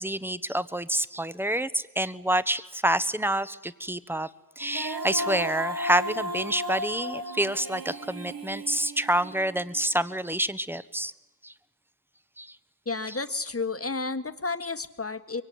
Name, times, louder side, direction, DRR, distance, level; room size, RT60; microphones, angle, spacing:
voice 1, 0.0-4.3 4.6-11.1 11.4-11.5 12.4-12.6, right 1 dB, 5° right, 14 dB, 1.1 m, -28 dB
Female singing, 4.6-9.8, equal, 80° right, 1.5 m, -35 dB
voice 2, 12.9-15.4, left 3 dB, 40° left, 9 dB, 1.6 m, -31 dB
24.5 x 23.5 x 9.4 m, 0.96 s
wide cardioid pair, 50°, 35 cm